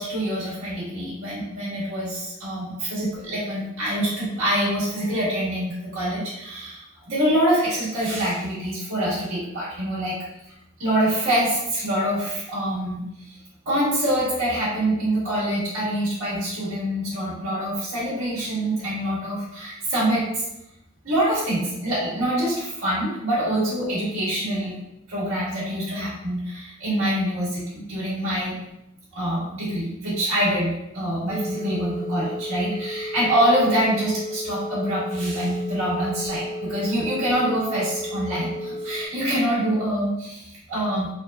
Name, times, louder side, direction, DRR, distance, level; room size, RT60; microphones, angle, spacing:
voice 1, 0.0-10.1 10.5-10.6 10.8-13.3 13.6-20.4 21.0-24.7 25.1-28.5 29.1-41.1, right 1 dB, 90° right, -9 dB, 1.5 m, -25 dB
sound 1, 31.3-39.1, equal, 35° left, 0.4 m, -33 dB
3.6 x 2.1 x 2.3 m, 0.85 s
head